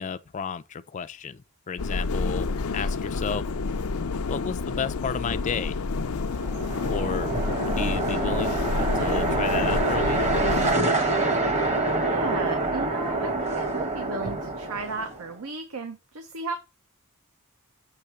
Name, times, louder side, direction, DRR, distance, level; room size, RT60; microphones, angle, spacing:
voice 1, 0.0-1.4 1.7-3.5 4.3-5.8 6.9-7.3 7.6-8.7 8.9-10.2, left 6 dB, 35° left, 0.4 m, -32 dB
sound 1, 1.8-10.7, left 4 dB, 80° left, 0.6 m, -29 dB
sound 2, 6.3-15.3, right 2 dB, 30° right, 1.1 m, -26 dB
voice 2, 12.0-16.5, right 3 dB, 80° right, 0.9 m, -35 dB
6.8 x 3.2 x 5.9 m
head